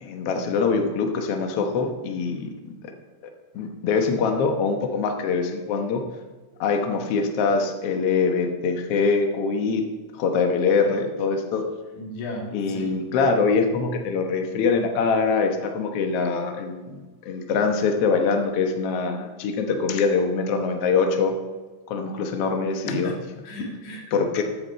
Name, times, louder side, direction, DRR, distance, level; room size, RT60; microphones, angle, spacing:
voice 1, 0.0-2.5 3.5-6.0 6.6-9.8 10.1-11.6 12.5-21.3 21.9-23.1 24.1-24.4, left 4 dB, 85° left, 4 dB, 1.3 m, -23 dB
voice 2, 11.9-12.9 22.9-24.2, left 1 dB, 55° left, 1 dB, 3.0 m, -35 dB
13.5 x 9.6 x 4.2 m, 1.3 s
omnidirectional pair, 4.4 m